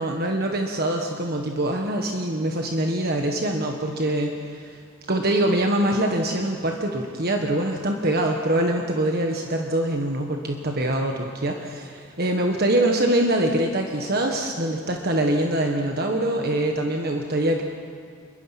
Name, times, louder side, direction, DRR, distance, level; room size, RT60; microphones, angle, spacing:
voice 1, 0.0-4.8 5.1-17.6, right 1 dB, 55° right, 2 dB, 1.5 m, -24 dB
27.5 x 22.0 x 6.0 m, 2.2 s
head